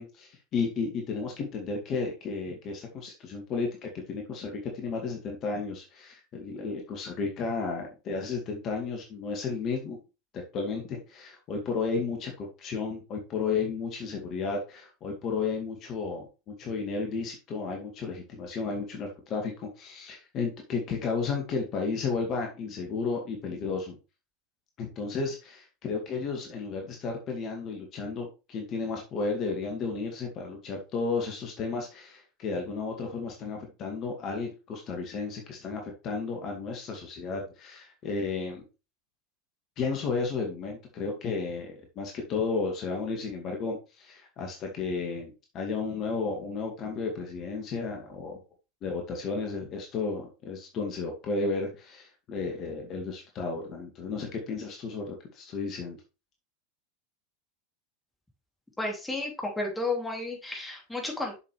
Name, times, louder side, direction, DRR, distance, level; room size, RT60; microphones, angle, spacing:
voice 1, 0.0-10.0 10.3-24.0 24.8-38.6 39.8-48.4 48.8-56.0, left 4 dB, 40° left, 1 dB, 2.1 m, -33 dB
voice 2, 58.8-61.4, left 2 dB, 10° left, 0 dB, 3.1 m, -32 dB
7.3 x 6.8 x 3.4 m, 0.30 s
figure-of-eight pair, 85°, 0 cm